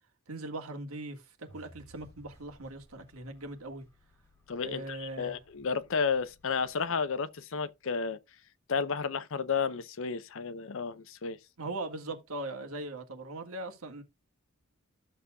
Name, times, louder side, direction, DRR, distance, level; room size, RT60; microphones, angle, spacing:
voice 1, 0.3-3.9 4.6-5.4 11.6-14.0, right 2 dB, 85° right, 1.7 m, -40 dB
sound 1, 1.5-7.6, equal, 15° left, 4.2 m, -60 dB
voice 2, 4.5-8.2 8.7-11.4, left 5 dB, 65° left, 0.7 m, -32 dB
12.5 x 6.8 x 2.3 m
head